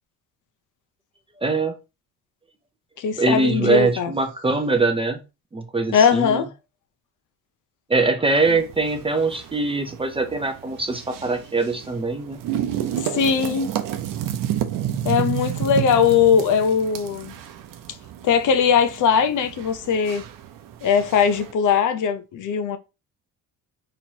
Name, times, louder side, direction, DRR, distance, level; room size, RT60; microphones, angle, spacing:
voice 1, 1.4-1.7 3.2-5.2 5.5-6.4 7.9-12.4, right 3 dB, 15° right, 0.5 m, -22 dB
voice 2, 3.0-4.1 5.9-6.5 8.5-8.6 13.0-13.7 15.0-17.4 18.2-20.2 20.8-22.8, left 7 dB, 60° left, 0.7 m, -20 dB
sound 1, 8.3-21.5, right 10 dB, 65° right, 0.7 m, -31 dB
4.3 x 3.1 x 2.8 m
cardioid pair, 125°, 35 cm